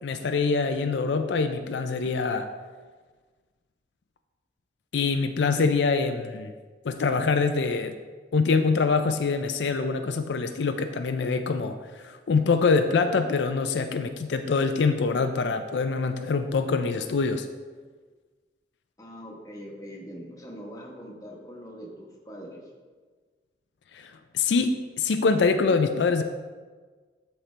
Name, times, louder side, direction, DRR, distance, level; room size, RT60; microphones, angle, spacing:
voice 1, 0.0-2.5 4.9-6.5 6.8-8.0 8.3-17.5 23.9-26.2, left 4 dB, 80° left, 7 dB, 0.4 m, -25 dB
voice 2, 19.0-22.7, equal, 20° left, -1 dB, 1.2 m, -42 dB
13.0 x 4.3 x 3.3 m, 1.4 s
head